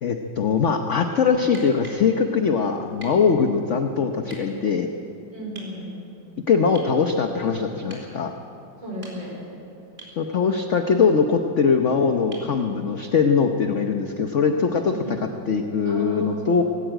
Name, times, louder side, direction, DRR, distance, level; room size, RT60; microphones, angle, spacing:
voice 1, 0.0-4.9 6.5-8.3 10.2-16.6, left 5 dB, 50° left, 5 dB, 1.0 m, -21 dB
sound 1, 1.5-2.1 3.0-3.2 4.3-4.4 5.6-5.8 6.8-7.0 7.9-8.1 8.8-9.5 10.0-10.2 12.3-12.6 14.4-14.5, right 2 dB, 30° right, 4.7 m, -43 dB
voice 2, 5.3-5.9 8.8-9.4 14.9-15.2 15.8-16.6, equal, 85° right, -4 dB, 5.7 m, -35 dB
18.5 x 17.0 x 9.0 m, 2.7 s
omnidirectional pair, 2.0 m